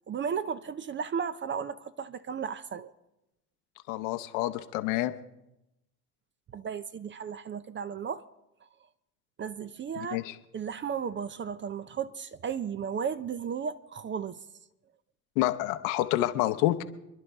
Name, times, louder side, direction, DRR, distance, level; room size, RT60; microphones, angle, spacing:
voice 1, 0.1-2.9 6.5-8.2 9.4-10.2 10.5-14.4, right 7 dB, 25° right, 0.6 m, -34 dB
voice 2, 3.9-5.1 10.0-10.4 15.4-16.8, left 15 dB, 70° left, 1.1 m, -28 dB
27.5 x 11.0 x 3.5 m
hypercardioid pair, 75°, 46 cm